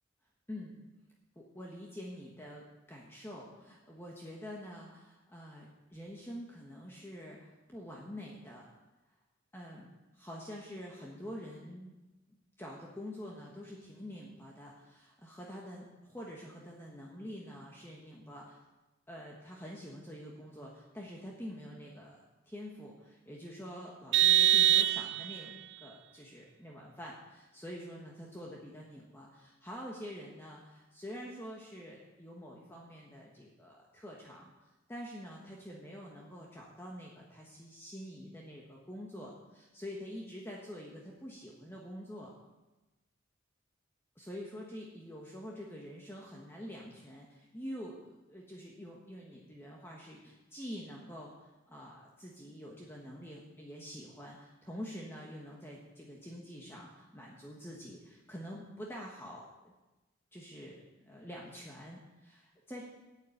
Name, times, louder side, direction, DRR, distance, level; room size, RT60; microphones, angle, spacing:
voice 1, 1.3-2.6 2.9-8.6 9.5-9.9 10.1-11.9 12.6-18.6 19.1-22.2 22.5-25.5 25.8-34.5 34.9-42.3 44.1-48.0 48.3-59.4 60.3-62.8, equal, 10° left, -3 dB, 1.5 m, -46 dB
Vehicle horn car horn honking, 24.1-25.5, right 11 dB, 60° right, 0.4 m, -24 dB
9.8 x 8.5 x 8.5 m, 1.1 s
head